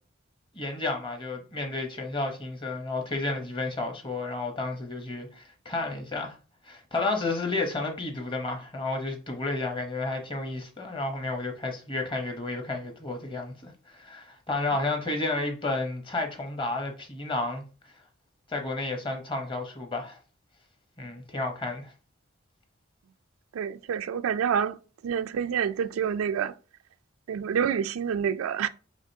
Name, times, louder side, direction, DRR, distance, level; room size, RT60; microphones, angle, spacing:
voice 1, 0.5-6.3 6.6-17.6 18.5-20.2 21.0-21.9, left 2 dB, 25° left, 0.9 m, -31 dB
voice 2, 23.5-24.8 25.0-26.5 27.3-28.7, right 7 dB, 85° right, 0.3 m, -28 dB
4.9 x 3.6 x 2.7 m
head